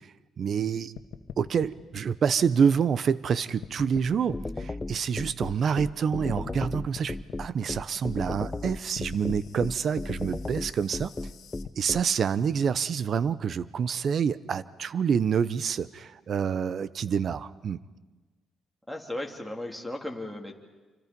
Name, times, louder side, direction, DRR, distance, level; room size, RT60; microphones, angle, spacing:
voice 1, 0.4-0.9 1.4-11.1 11.8-17.8, right 7 dB, 55° right, 17 dB, 0.8 m, -27 dB
sound 1, 1.0-3.3 3.6-6.0 6.3-11.7, left 9 dB, 75° left, 1.5 m, -45 dB
sound 2, 4.3-12.0, left 2 dB, 20° left, 0.7 m, -34 dB
voice 2, 18.9-20.6, left 1 dB, ahead, 3 dB, 3.2 m, -36 dB
27.5 x 25.0 x 5.4 m, 1.3 s
cardioid pair, 90°, 0 cm